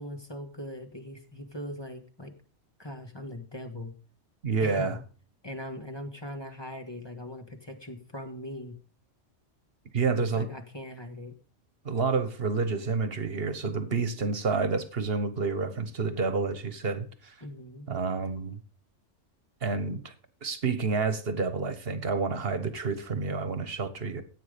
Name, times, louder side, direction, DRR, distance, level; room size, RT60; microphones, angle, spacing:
voice 1, 0.0-2.3 2.8-3.9 4.6-5.0 5.4-8.8 10.1-11.3 17.4-17.9, left 1 dB, 20° left, 1.6 m, -40 dB
voice 2, 4.4-5.0 9.9-10.5 11.8-17.3 17.9-18.6 19.6-20.1 20.4-24.2, right 4 dB, 50° right, 1.5 m, -29 dB
14.5 x 8.8 x 5.2 m
omnidirectional pair, 1.3 m